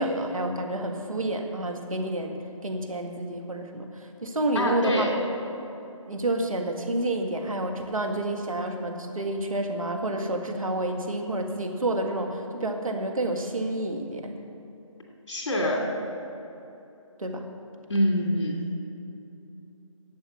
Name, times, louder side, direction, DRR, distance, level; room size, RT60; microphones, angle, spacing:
voice 1, 0.0-2.4 2.6-5.1 6.1-14.3 17.2-17.5, right 1 dB, 85° right, 3 dB, 1.8 m, -29 dB
voice 2, 4.5-5.1 15.3-15.8 17.9-18.7, equal, 55° left, 0 dB, 2.9 m, -25 dB
11.5 x 8.0 x 8.4 m, 2.8 s
figure-of-eight pair, 165°, 17 cm